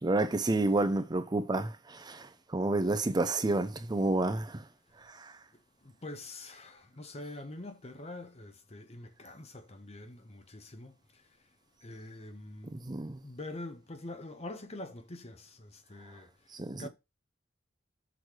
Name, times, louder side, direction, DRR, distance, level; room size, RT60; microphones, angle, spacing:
voice 1, 0.0-4.6 5.0-5.3 12.7-13.2 16.6-16.9, right 2 dB, 20° right, 0.5 m, -30 dB
voice 2, 5.5-11.3 11.8-12.8 13.2-16.9, left 2 dB, 35° left, 0.8 m, -45 dB
6.3 x 3.3 x 6.0 m
head